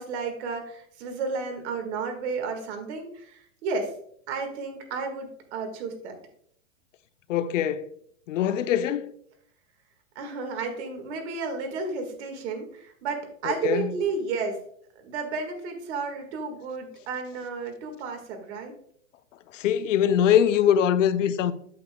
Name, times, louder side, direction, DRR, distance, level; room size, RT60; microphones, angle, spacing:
voice 1, 0.0-3.9 4.3-6.2 10.1-14.6 15.0-18.7, right 4 dB, 55° right, 1.8 m, -32 dB
voice 2, 7.3-7.9 8.3-9.1 13.4-13.9 19.5-21.5, left 9 dB, 65° left, 0.7 m, -22 dB
8.4 x 6.7 x 2.2 m
hypercardioid pair, 145°, 41 cm